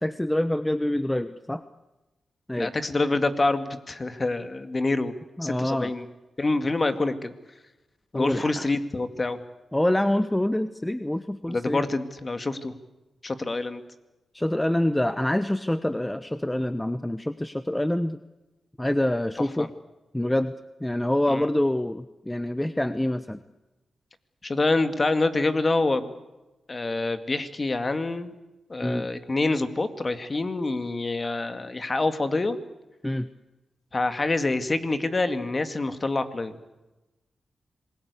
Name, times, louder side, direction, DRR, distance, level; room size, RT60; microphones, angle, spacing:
voice 1, 0.0-1.6 2.5-2.7 5.4-5.9 8.1-8.7 9.7-11.9 14.3-18.2 18.8-19.7 20.1-20.5 20.8-23.4 28.8-29.1 33.0-33.3, left 1 dB, 10° left, 11 dB, 0.9 m, -26 dB
voice 2, 2.6-5.1 5.4-6.1 6.4-7.3 8.1-9.4 11.4-12.7 13.2-13.8 19.6-19.7 21.3-21.4 24.4-26.1 26.7-28.3 28.7-32.6 33.9-36.5, left 2 dB, 35° left, 9 dB, 2.1 m, -26 dB
27.0 x 20.5 x 8.4 m, 1.0 s
cardioid pair, 75°, 0 cm